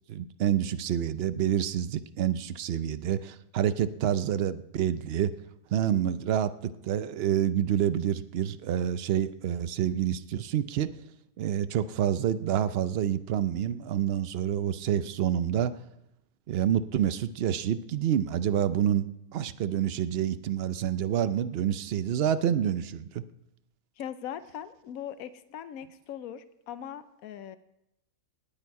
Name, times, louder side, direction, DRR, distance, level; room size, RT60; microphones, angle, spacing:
voice 1, 0.1-5.3 5.7-10.9 11.4-15.7 16.5-19.1 19.3-23.2, right 10 dB, 60° right, 13 dB, 0.7 m, -28 dB
voice 2, 24.0-27.6, left 9 dB, 70° left, 13 dB, 1.1 m, -40 dB
18.5 x 8.9 x 4.7 m, 0.84 s
omnidirectional pair, 1.6 m